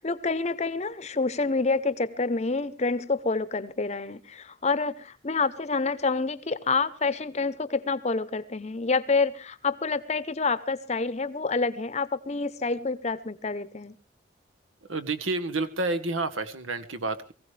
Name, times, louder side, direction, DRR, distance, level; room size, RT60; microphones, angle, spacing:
voice 1, 0.0-14.0, left 4 dB, 35° left, 15 dB, 0.7 m, -28 dB
voice 2, 14.9-17.3, right 3 dB, 90° right, 9 dB, 1.3 m, -29 dB
23.0 x 15.5 x 3.3 m, 0.33 s
head